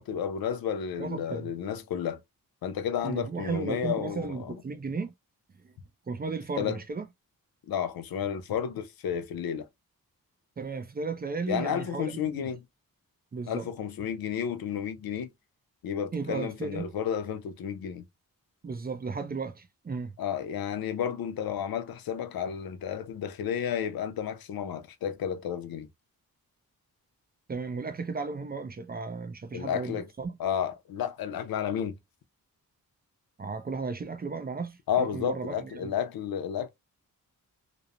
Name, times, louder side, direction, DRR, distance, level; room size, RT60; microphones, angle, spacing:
voice 1, 0.0-2.2 2.6-4.6 6.6-6.8 7.7-9.7 11.5-12.6 13.5-15.3 15.8-18.0 20.2-25.9 29.5-30.1 30.4-32.0 34.9-36.7, left 8 dB, 90° left, 0.6 m, -32 dB
voice 2, 1.0-1.5 3.0-5.1 5.6-5.7 6.1-7.1 10.6-12.5 13.3-13.7 16.1-16.9 18.6-20.2 27.5-30.4 33.4-35.9, right 4 dB, 25° right, 0.4 m, -35 dB
3.0 x 2.0 x 2.4 m
wide cardioid pair, 105°, 35 cm